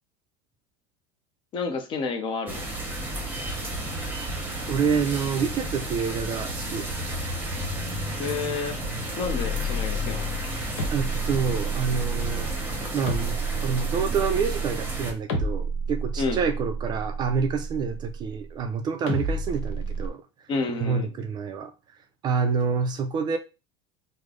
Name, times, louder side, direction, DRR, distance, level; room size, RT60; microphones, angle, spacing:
voice 1, 1.5-2.6 8.2-8.8 9.2-10.3 16.2-16.4 20.5-21.1, left 4 dB, 35° left, 0.6 m, -29 dB
sound 1, 2.5-15.1, right 1 dB, 15° right, 0.9 m, -32 dB
voice 2, 4.7-6.9 10.9-12.5 12.9-20.2 20.7-21.7 22.2-23.4, right 5 dB, 30° right, 0.4 m, -27 dB
sound 2, 9.3-18.5 19.1-20.1, right 2 dB, 80° left, 1.0 m, -30 dB
3.1 x 2.0 x 3.6 m
supercardioid pair, 140°, 14 cm